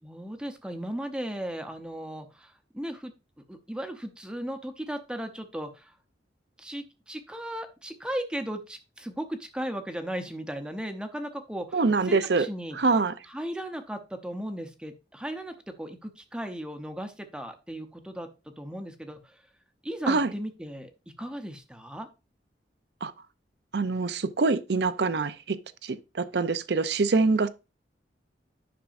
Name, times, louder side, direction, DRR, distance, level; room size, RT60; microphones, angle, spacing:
voice 1, 0.0-3.1 3.5-5.9 6.6-12.8 13.3-19.4 19.8-20.9 21.2-22.1, equal, 5° right, 0.8 m, -36 dB
voice 2, 11.7-12.5 12.8-13.1 20.1-20.3 23.0-23.1 23.7-27.5, right 3 dB, 65° right, 0.6 m, -25 dB
10.5 x 6.0 x 2.6 m
head